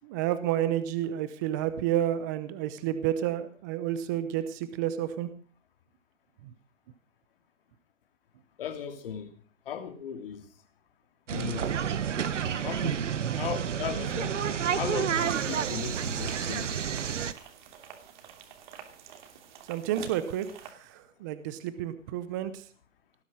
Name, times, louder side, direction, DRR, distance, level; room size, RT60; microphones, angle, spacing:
voice 1, 0.0-5.3 6.4-6.5 19.7-22.6, right 11 dB, 15° right, 0.7 m, -30 dB
voice 2, 8.6-9.3 9.6-10.4 11.3-11.7 12.6-13.0 13.3-14.4 14.7-16.9, left 8 dB, 45° left, 3.0 m, -37 dB
sound 1, 11.3-17.3, right 8 dB, 70° right, 1.5 m, -30 dB
sound 2, 15.1-20.7, right 8 dB, 35° right, 2.9 m, -48 dB
18.5 x 9.8 x 6.3 m
hypercardioid pair, 160°, 38 cm